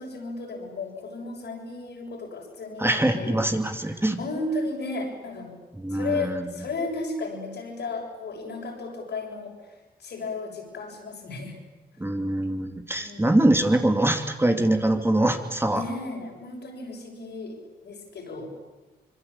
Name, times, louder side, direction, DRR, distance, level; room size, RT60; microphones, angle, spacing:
voice 1, 0.0-3.4 3.8-5.5 5.9-9.6 10.0-11.6 13.0-13.4 15.7-18.5, left 3 dB, 70° left, 1 dB, 7.3 m, -34 dB
voice 2, 2.8-4.2 5.8-6.4 12.0-15.8, right 1 dB, 15° right, 5 dB, 2.6 m, -23 dB
25.5 x 22.5 x 8.7 m, 1.2 s
cardioid pair, 60°, 18 cm